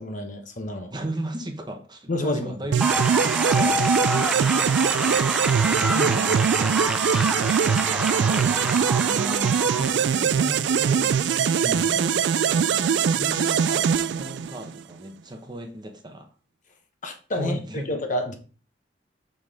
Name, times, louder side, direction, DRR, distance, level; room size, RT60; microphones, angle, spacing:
voice 1, 0.0-0.9 2.1-2.5 5.9-6.8 11.6-11.9 17.0-17.6 17.9-18.3, left 1 dB, 45° left, 1.0 m, -30 dB
voice 2, 0.9-4.5 5.0-5.4 6.0-6.3 8.0-11.2 11.9-16.3 17.3-17.9, right 1 dB, 25° right, 1.0 m, -35 dB
sound 1, 2.7-14.8, right 7 dB, 75° right, 0.3 m, -22 dB
sound 2, 2.8-10.0, equal, 5° right, 0.4 m, -27 dB
6.1 x 5.1 x 3.6 m
head